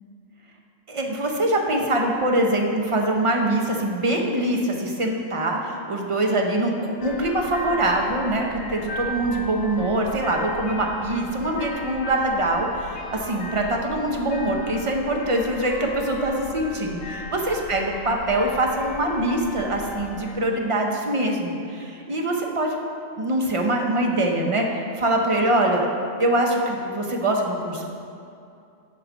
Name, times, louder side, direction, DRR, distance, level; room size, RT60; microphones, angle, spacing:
voice 1, 0.9-22.8 23.2-25.9 26.2-27.9, right 1 dB, 35° right, 1 dB, 0.6 m, -24 dB
sound 1, 7.0-20.4, left 2 dB, 80° left, 1.0 m, -37 dB
7.7 x 4.8 x 5.0 m, 2.6 s
omnidirectional pair, 1.3 m